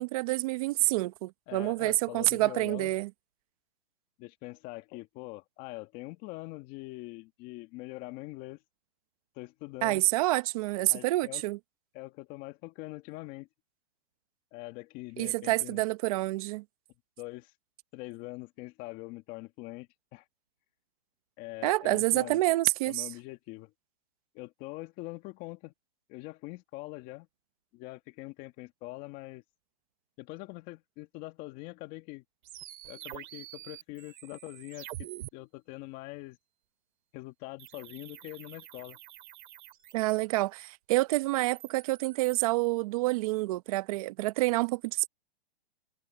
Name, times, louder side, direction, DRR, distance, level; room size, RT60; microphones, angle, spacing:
voice 1, 0.0-3.1 9.8-11.6 15.2-16.6 21.6-23.1 39.9-45.1, right 19 dB, 35° right, 1.1 m, -28 dB
voice 2, 1.5-2.9 4.2-8.6 9.4-10.1 10.9-11.4 11.9-13.5 14.5-15.8 17.2-17.5 17.9-20.2 21.4-22.4 22.9-23.7 24.3-25.7 26.1-27.3 27.7-29.4 30.2-32.2 32.9-36.4 37.1-39.0, left 21 dB, 25° left, 2.0 m, -43 dB
sound 1, 32.4-35.3 37.6-40.4 41.2-42.5, right 14 dB, 50° right, 4.2 m, -47 dB
hypercardioid pair, 155°, 31 cm